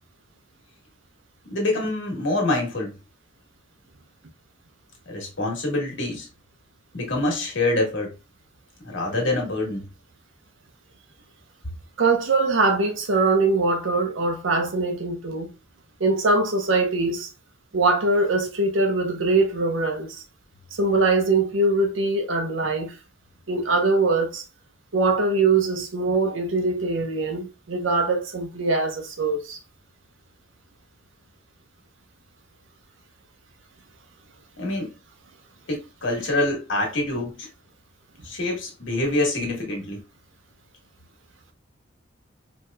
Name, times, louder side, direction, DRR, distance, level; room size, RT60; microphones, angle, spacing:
voice 1, 1.4-2.9 5.1-6.3 6.9-8.1 8.8-9.8 34.6-34.9 35.7-37.5 38.2-40.0, left 2 dB, 70° left, 1.6 m, -25 dB
voice 2, 12.0-15.5 16.0-17.3 17.7-20.2 20.7-22.9 23.5-24.4 24.9-29.6, right 3 dB, 80° right, 0.9 m, -22 dB
4.7 x 3.0 x 2.3 m
head